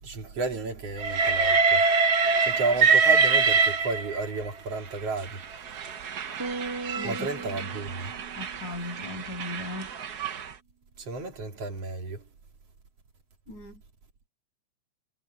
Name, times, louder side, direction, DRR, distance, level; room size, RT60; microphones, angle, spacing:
voice 1, 0.0-1.9 2.4-5.4 7.0-8.2 11.0-12.2, right 3 dB, 55° right, 3.9 m, -32 dB
Train, 1.0-4.4 5.2-10.5, right 5 dB, 70° right, 0.9 m, -25 dB
sound 1, 6.4-9.8, right 3 dB, 5° right, 2.6 m, -39 dB
voice 2, 7.0-7.6 8.4-9.9 13.5-13.8, left 2 dB, 80° left, 9.1 m, -38 dB
omnidirectional pair, 3.4 m